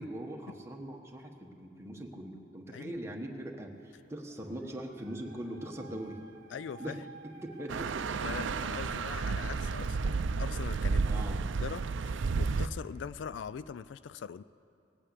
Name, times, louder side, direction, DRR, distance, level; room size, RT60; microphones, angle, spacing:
voice 1, 0.0-6.2 6.8-8.2 9.6-9.8 11.0-11.4, right 1 dB, 15° right, 1 dB, 1.3 m, -42 dB
voice 2, 2.7-3.1 6.5-7.0 8.2-14.4, left 7 dB, 70° left, 17 dB, 0.3 m, -42 dB
Dog, 3.9-9.0, right 4 dB, 55° right, 1.1 m, -54 dB
sound 1, 7.7-12.7, right 4 dB, 80° right, 0.5 m, -32 dB
19.0 x 8.9 x 8.3 m, 2.8 s
head